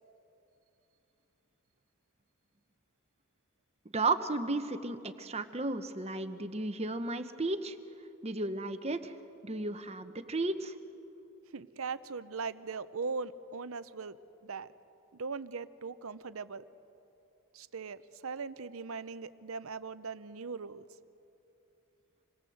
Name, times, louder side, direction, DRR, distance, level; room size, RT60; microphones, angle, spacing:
voice 1, 3.9-7.7 8.2-9.1 9.4-10.7, right 2 dB, 30° right, 9 dB, 1.1 m, -34 dB
voice 2, 11.5-14.7 15.1-16.6 17.5-20.8, right 4 dB, 70° right, 14 dB, 0.7 m, -40 dB
27.5 x 21.5 x 7.9 m, 2.8 s
head